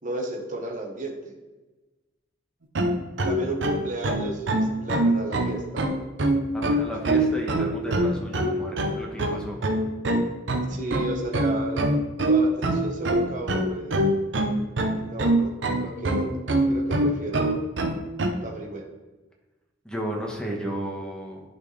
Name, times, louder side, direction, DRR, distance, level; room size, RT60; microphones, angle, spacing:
voice 1, 0.0-1.3 3.2-5.9 7.2-7.3 10.7-11.9 12.3-14.0 15.0-16.3 16.7-17.6 18.4-18.9, right 2 dB, 45° right, 0 dB, 1.2 m, -33 dB
sound 1, 2.8-18.3, right 1 dB, 70° right, 0.7 m, -23 dB
voice 2, 6.5-9.6 19.8-21.4, right 1 dB, 5° left, -1 dB, 1.2 m, -33 dB
11.0 x 4.4 x 3.3 m, 1.2 s
head